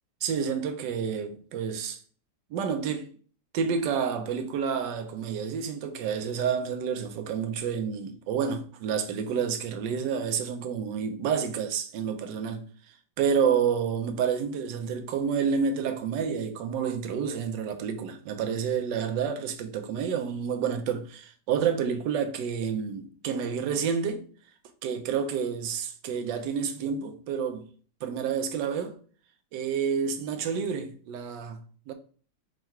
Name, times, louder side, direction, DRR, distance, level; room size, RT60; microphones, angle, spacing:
voice 1, 0.2-2.0 2.5-3.1 3.5-12.7 13.2-24.3 24.8-27.7 28.0-29.0 29.5-31.9, right 7 dB, 75° right, 1.3 m, -29 dB
4.6 x 2.5 x 4.4 m
omnidirectional pair, 2.0 m